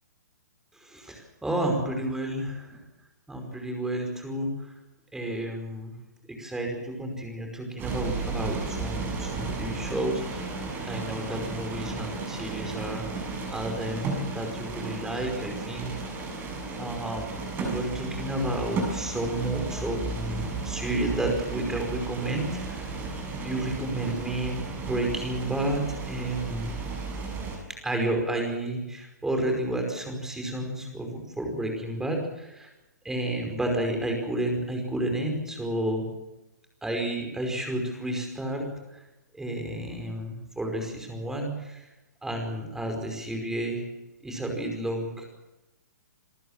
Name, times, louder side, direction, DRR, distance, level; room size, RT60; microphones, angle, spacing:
voice 1, 0.7-2.8 3.3-4.7 5.1-5.9 6.4-10.5 10.8-13.1 13.5-15.9 16.8-23.1 23.4-26.7 27.8-32.7 33.0-36.1 36.8-38.7 38.9-39.0 39.3-41.9 42.2-43.8 44.2-45.2, right 1 dB, 5° right, 2 dB, 5.2 m, -31 dB
sound 1, 7.8-27.6, right 3 dB, 20° right, 7.3 m, -34 dB
28.0 x 14.0 x 7.5 m, 0.98 s
figure-of-eight pair, 125°, 9 cm